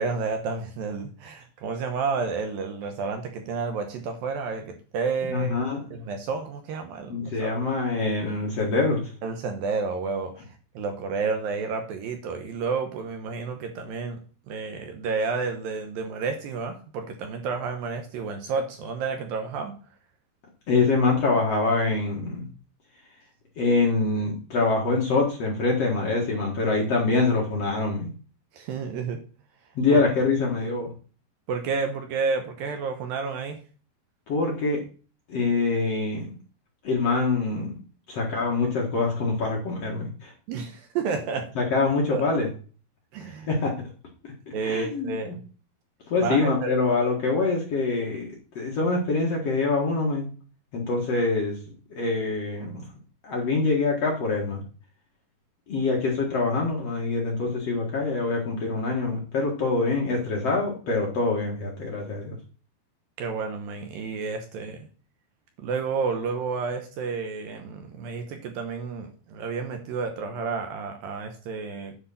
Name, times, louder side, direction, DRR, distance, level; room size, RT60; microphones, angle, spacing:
voice 1, 0.0-5.5 5.9-7.6 9.2-10.3 10.7-14.2 14.5-19.7 28.5-29.2 31.5-33.6 40.5-41.5 42.1-42.3 43.1-43.5 44.5-45.4 46.2-46.7 63.2-64.8 65.6-72.0, right 5 dB, 70° right, 5 dB, 2.5 m, -30 dB
voice 2, 5.3-5.8 7.1-9.1 20.7-22.5 23.6-28.1 29.8-30.9 34.3-34.8 35.3-36.4 36.8-37.7 38.1-40.3 41.6-42.5 43.2-43.8 44.5-45.4 46.1-50.3 50.7-51.6 51.9-52.9 53.2-54.6 55.7-62.4, left 3 dB, 50° left, -1 dB, 2.1 m, -25 dB
10.0 x 5.0 x 5.7 m, 0.38 s
omnidirectional pair, 4.9 m